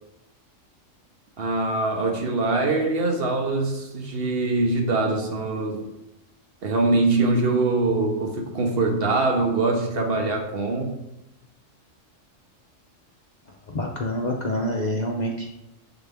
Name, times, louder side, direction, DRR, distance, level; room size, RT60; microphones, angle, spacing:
voice 1, 1.4-5.9 6.6-11.0, right 2 dB, 55° right, 2 dB, 1.0 m, -23 dB
voice 2, 13.7-15.5, left 1 dB, 50° left, -1 dB, 0.6 m, -27 dB
6.9 x 4.0 x 3.4 m, 0.92 s
omnidirectional pair, 1.3 m